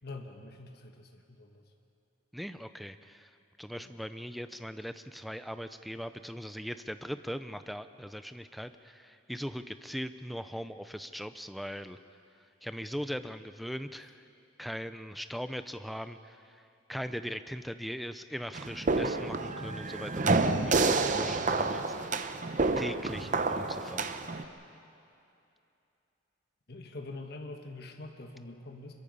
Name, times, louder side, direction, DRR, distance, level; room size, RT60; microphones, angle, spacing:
voice 1, 0.0-1.6 3.8-3.9 26.7-28.9, left 2 dB, 50° left, 3 dB, 1.3 m, -45 dB
voice 2, 2.3-3.3 3.6-12.0 12.6-14.3 14.6-22.0 22.8-24.1, equal, ahead, 10 dB, 0.5 m, -40 dB
sound 1, 18.5-24.4, right 3 dB, 40° right, 0.8 m, -29 dB
25.5 x 23.0 x 5.5 m, 2.7 s
head